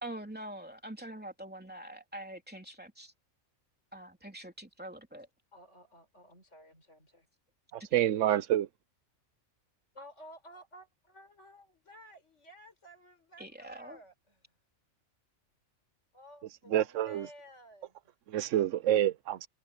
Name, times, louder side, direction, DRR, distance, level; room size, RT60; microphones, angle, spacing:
voice 1, 0.0-3.1 3.9-5.3 7.9-8.4 13.4-14.0, right 1 dB, 5° right, 3.1 m, -45 dB
voice 2, 5.5-7.3 9.9-14.5 16.1-18.1, equal, 55° left, 6.3 m, -54 dB
voice 3, 7.7-8.7 16.7-17.3 18.3-19.5, right 12 dB, 70° right, 0.9 m, -28 dB
omnidirectional pair, 1.4 m